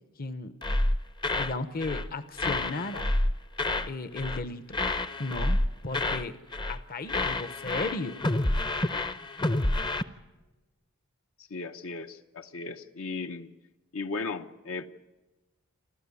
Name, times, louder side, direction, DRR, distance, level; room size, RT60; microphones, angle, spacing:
voice 1, 0.2-0.6 1.3-3.1 3.8-4.8 5.2-5.6 5.8-6.4 6.7-8.2, left 2 dB, 45° left, 12 dB, 0.9 m, -35 dB
sound 1, 0.6-1.6 1.8-2.1 2.4-3.9 4.2-4.5 4.7-6.3 6.5-6.8 7.1-10.0, left 2 dB, 20° left, 0.6 m, -28 dB
voice 2, 11.5-13.5 13.9-14.9, left 3 dB, 70° left, 7 dB, 0.9 m, -36 dB
28.0 x 13.0 x 9.6 m, 1.1 s
head